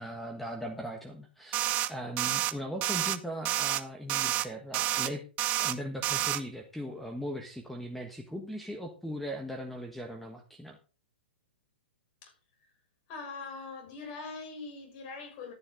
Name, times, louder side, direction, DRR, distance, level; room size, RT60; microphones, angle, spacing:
voice 1, 0.0-5.2 5.6-10.8, equal, ahead, 1.4 m, -39 dB
sound 1, 1.5-1.9 2.2-2.5 2.8-3.2 3.4-3.8 4.1-4.5 4.7-5.1 5.4-5.7 6.0-6.4, right 14 dB, 30° right, 0.8 m, -29 dB
voice 2, 13.1-15.5, left 4 dB, 40° left, 6.2 m, -42 dB
12.5 x 10.0 x 3.8 m
hypercardioid pair, 120°, 6 cm